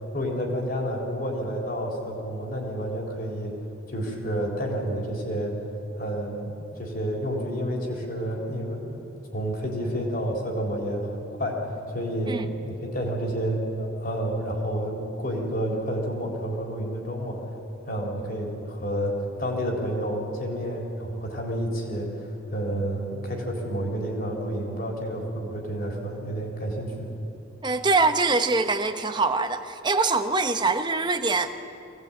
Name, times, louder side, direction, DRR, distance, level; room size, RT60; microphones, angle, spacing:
voice 1, 0.1-3.6 3.9-5.6 6.0-9.1 9.3-11.6 11.9-17.4 17.9-27.1, equal, 45° left, 0 dB, 3.9 m, -30 dB
voice 2, 27.6-31.6, right 3 dB, 20° right, 7 dB, 0.9 m, -24 dB
23.5 x 18.0 x 8.9 m, 2.9 s
head